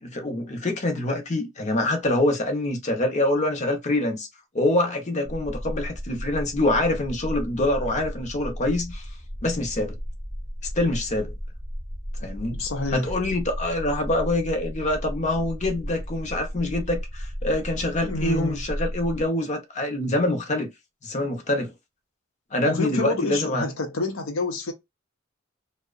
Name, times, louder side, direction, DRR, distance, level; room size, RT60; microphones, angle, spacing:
voice 1, 0.0-4.3 4.5-9.0 9.4-10.0 10.7-11.4 12.2-12.6 12.9-20.7 21.0-21.7 22.5-23.6, left 1 dB, 35° left, 0.6 m, -25 dB
sound 1, 5.2-19.3, equal, 5° right, 0.7 m, -34 dB
voice 2, 12.5-13.1 18.0-18.6 22.6-24.7, left 2 dB, 80° left, 0.6 m, -28 dB
2.7 x 2.1 x 2.4 m
head